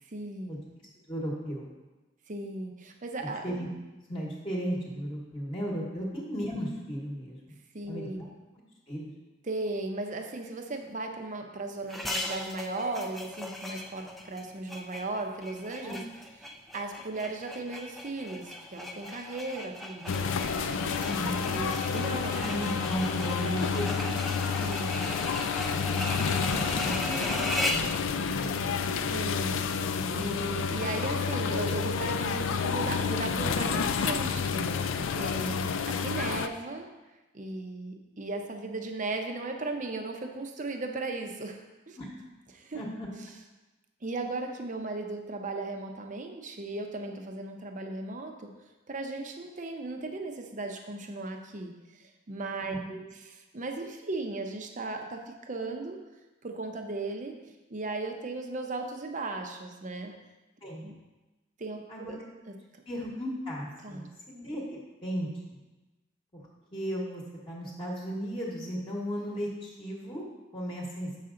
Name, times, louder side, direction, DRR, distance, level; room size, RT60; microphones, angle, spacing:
voice 1, 0.1-0.6 2.3-3.4 6.0-6.1 7.7-8.2 9.4-16.0 16.7-20.4 21.5-22.3 24.6-25.0 29.1-29.6 30.1-36.9 37.3-42.0 42.5-42.8 44.0-48.5 48.9-56.0 56.4-57.4 57.7-60.1 60.8-61.0 61.6-62.2 62.5-62.6 63.8-64.1, right 2 dB, 40° right, 4 dB, 0.7 m, -36 dB
voice 2, 1.1-1.7 3.4-3.7 4.1-7.5 7.9-8.1 8.9-9.1 15.8-16.0 21.0-21.5 22.3-24.2 25.7-28.9 42.0-42.1 42.7-43.1 52.6-52.8 60.6-60.9 61.9-62.2 62.9-65.3 66.7-70.3 70.5-71.1, equal, 25° left, -4 dB, 1.1 m, -35 dB
sound 1, 11.9-28.0, left 1 dB, ahead, 0.4 m, -37 dB
sound 2, 20.1-36.5, left 6 dB, 75° left, 0.4 m, -30 dB
7.2 x 5.8 x 3.8 m, 1.1 s
head